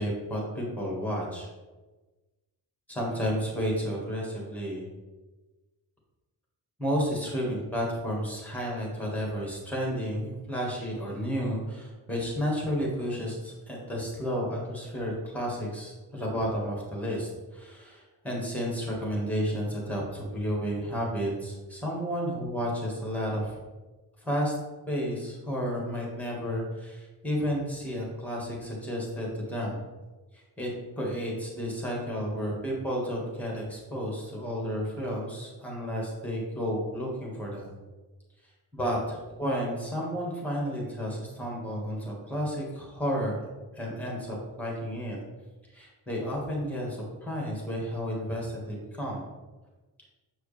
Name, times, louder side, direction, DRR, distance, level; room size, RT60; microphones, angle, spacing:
voice 1, 0.0-1.5 2.9-4.9 6.8-23.6 24.2-24.5 24.9-29.8 30.3-30.7 31.0-37.7 38.7-43.4 43.7-45.2 45.7-49.3, equal, 5° left, -3 dB, 1.6 m, -32 dB
7.4 x 4.8 x 3.3 m, 1.2 s
wide cardioid pair, 135°, 40 cm